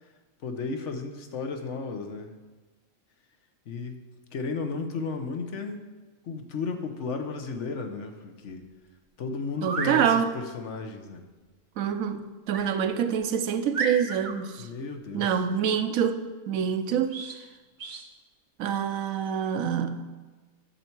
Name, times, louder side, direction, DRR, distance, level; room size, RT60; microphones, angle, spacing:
voice 1, 0.4-2.3 3.7-4.0 4.3-5.9 6.2-8.6 9.2-11.2 14.6-15.3, left 4 dB, 60° left, 1.1 m, -34 dB
sound 1, 9.5-10.0 12.5-12.7 13.2-13.3 13.7-14.4 17.1-17.4 17.8-18.1, right 4 dB, 40° right, 0.9 m, -33 dB
voice 2, 9.6-10.4 11.8-14.7 15.1-17.2 18.6-20.0, right 8 dB, 80° right, 1.1 m, -26 dB
11.0 x 6.8 x 4.5 m
omnidirectional pair, 1.4 m